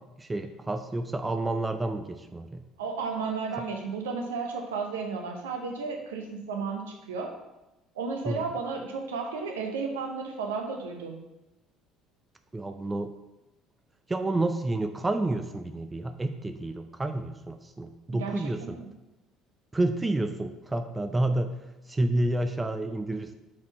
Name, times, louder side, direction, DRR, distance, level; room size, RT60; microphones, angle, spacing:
voice 1, 0.2-2.6 8.3-8.4 12.5-13.1 14.1-18.8 19.7-21.5 21.9-23.3, right 2 dB, 15° right, 7 dB, 0.4 m, -29 dB
voice 2, 2.8-7.3 7.9-11.2 18.1-18.9, right 4 dB, 70° right, 3 dB, 0.8 m, -33 dB
6.1 x 4.4 x 4.3 m, 0.97 s
figure-of-eight pair, 55°, 0 cm